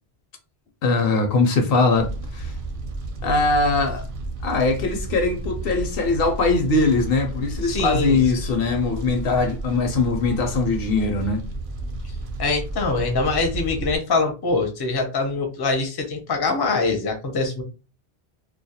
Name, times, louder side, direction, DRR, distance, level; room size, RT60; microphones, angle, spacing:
voice 1, 0.8-2.5 3.2-4.0 4.4-11.4, left 3 dB, 70° left, 0.8 m, -21 dB
Fire, 2.0-14.0, right 2 dB, 60° right, 0.7 m, -32 dB
voice 2, 7.6-8.2 12.4-17.6, left 3 dB, 30° left, 0.4 m, -23 dB
2.2 x 2.1 x 2.7 m
omnidirectional pair, 1.0 m